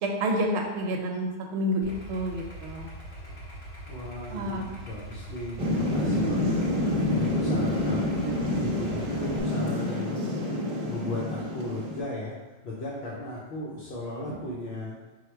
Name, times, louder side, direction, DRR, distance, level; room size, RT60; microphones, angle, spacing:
voice 1, 0.0-2.9 4.3-4.6, equal, 75° right, 2 dB, 0.8 m, -29 dB
Idling, 1.8-9.4, right 1 dB, 45° left, 1.0 m, -42 dB
voice 2, 3.8-10.3 10.5-12.3 12.6-14.9, left 1 dB, 65° left, -5 dB, 0.9 m, -37 dB
Thunder / Rain, 5.6-12.0, left 1 dB, 40° right, 0.7 m, -27 dB
4.6 x 2.1 x 4.5 m, 1.1 s
omnidirectional pair, 1.2 m